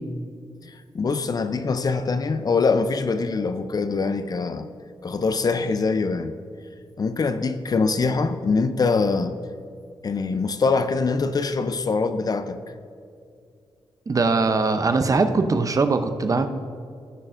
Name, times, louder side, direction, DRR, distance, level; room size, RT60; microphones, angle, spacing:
voice 1, 0.7-4.7 5.0-6.3 7.0-9.4 10.0-12.6, left 4 dB, 45° left, 0.5 m, -23 dB
voice 2, 14.1-16.5, right 3 dB, 40° right, 0.6 m, -21 dB
16.5 x 6.5 x 2.5 m
cardioid pair, 90°, 9 cm